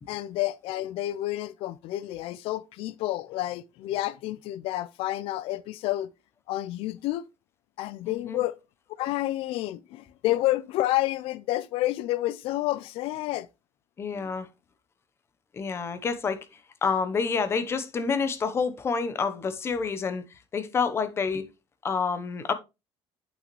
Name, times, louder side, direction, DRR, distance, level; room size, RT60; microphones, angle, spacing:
voice 1, 0.1-6.1 6.5-7.3 7.8-8.6 9.0-13.5, left 16 dB, 65° left, 0.4 m, -29 dB
voice 2, 8.1-8.4 14.0-14.5 15.5-16.5 16.8-20.2 20.5-21.5 21.8-22.5, left 5 dB, 25° left, 0.8 m, -28 dB
8.5 x 6.0 x 3.1 m
cardioid pair, 175°, 11 cm